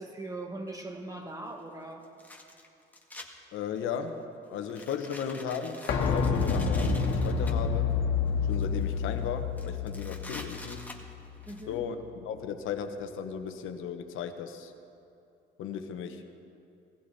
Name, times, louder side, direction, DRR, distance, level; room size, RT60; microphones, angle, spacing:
voice 1, 0.0-2.0 11.5-11.8, right 2 dB, 15° right, 2 dB, 2.0 m, -40 dB
sound 1, 0.7-0.8 2.0-3.3 3.8-4.1 4.6-7.5 8.3-8.9 9.2-9.3 9.6-11.6, left 2 dB, 10° left, 1.9 m, -46 dB
voice 2, 3.5-4.2 4.5-7.9 8.5-10.9 11.7-12.0 12.2-14.7 15.6-16.2, left 7 dB, 90° left, 7 dB, 1.0 m, -36 dB
sound 2, 5.9-11.5 11.8-11.9, left 5 dB, 70° left, 1.6 m, -29 dB
18.5 x 15.0 x 4.2 m, 2.7 s
cardioid pair, 90°, 20 cm